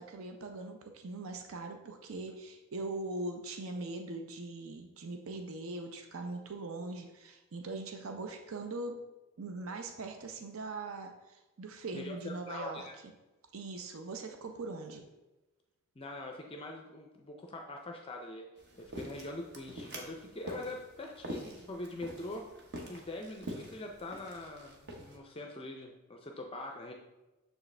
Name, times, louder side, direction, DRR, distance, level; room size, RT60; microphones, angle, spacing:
voice 1, 0.0-9.0 9.4-12.9 13.5-15.1, right 2 dB, 65° right, 5 dB, 0.5 m, -41 dB
voice 2, 11.9-12.9 16.0-18.5 18.8-22.4 22.9-26.9, left 2 dB, 25° left, 2 dB, 0.4 m, -43 dB
sound 1, 18.6-25.2, equal, 50° right, 1.0 m, -45 dB
6.5 x 4.9 x 3.2 m, 1.1 s
head